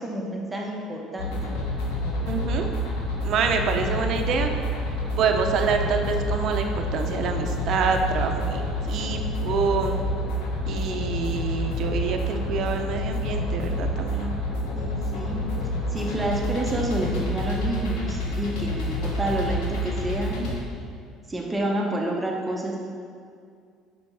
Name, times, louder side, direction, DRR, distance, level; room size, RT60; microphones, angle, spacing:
voice 1, 0.0-1.3 14.7-20.5 21.3-22.8, right 1 dB, 15° right, -1 dB, 1.2 m, -29 dB
sound 1, 1.2-20.6, left 1 dB, 85° left, 1.2 m, -28 dB
voice 2, 2.3-2.7 3.2-4.5 5.2-8.6 8.9-10.0 10.7-14.3, right 5 dB, 60° right, 4 dB, 0.8 m, -26 dB
5.9 x 5.2 x 5.6 m, 2.3 s
supercardioid pair, 90°, 0 cm